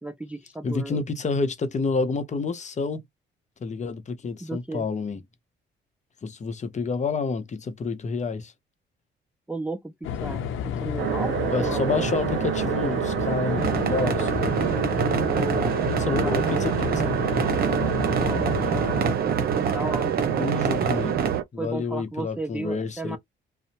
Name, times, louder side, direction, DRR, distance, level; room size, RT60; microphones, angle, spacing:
voice 1, 0.0-1.0 4.4-4.9 9.5-10.4 10.8-12.1 15.3-16.6 18.2-18.4 19.7-20.4 21.6-23.2, right 2 dB, 5° right, 0.3 m, -34 dB
voice 2, 0.6-3.0 3.6-5.2 6.2-8.5 11.5-14.5 15.9-17.0 20.4-21.2 21.5-23.2, left 4 dB, 35° left, 0.7 m, -29 dB
sound 1, 10.0-19.1, left 8 dB, 85° left, 0.6 m, -31 dB
sound 2, 11.0-21.4, right 11 dB, 65° right, 0.5 m, -27 dB
sound 3, 13.6-21.4, right 5 dB, 50° right, 0.9 m, -28 dB
2.7 x 2.0 x 2.8 m
cardioid pair, 90°, 20 cm